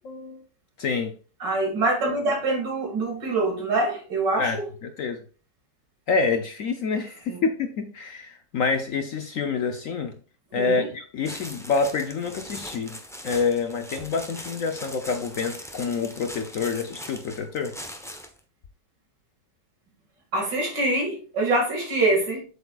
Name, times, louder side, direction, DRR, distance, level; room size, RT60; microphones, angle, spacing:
voice 1, 0.0-0.4 0.8-1.1 4.4-5.2 6.1-10.2 10.5-13.0 13.2-17.7, left 4 dB, 60° left, 6 dB, 0.9 m, -27 dB
voice 2, 1.4-4.7 7.3-7.4 10.5-10.9 20.3-22.4, right 2 dB, 70° right, 0 dB, 2.9 m, -25 dB
sound 1, 11.2-18.4, equal, 5° left, 0.4 m, -40 dB
7.9 x 7.0 x 2.4 m, 0.38 s
omnidirectional pair, 2.0 m